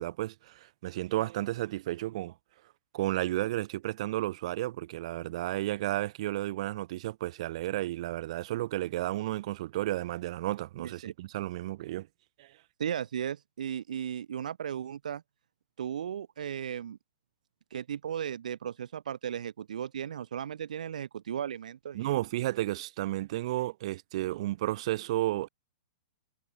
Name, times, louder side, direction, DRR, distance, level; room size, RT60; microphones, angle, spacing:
voice 1, 0.0-2.3 2.9-12.1 12.4-12.5 21.9-25.5, right 16 dB, 55° right, 4.9 m, -32 dB
voice 2, 10.8-11.1 12.8-15.2 15.8-17.0 17.7-22.1, right 9 dB, 80° right, 2.8 m, -36 dB
hypercardioid pair, 145°, 4 cm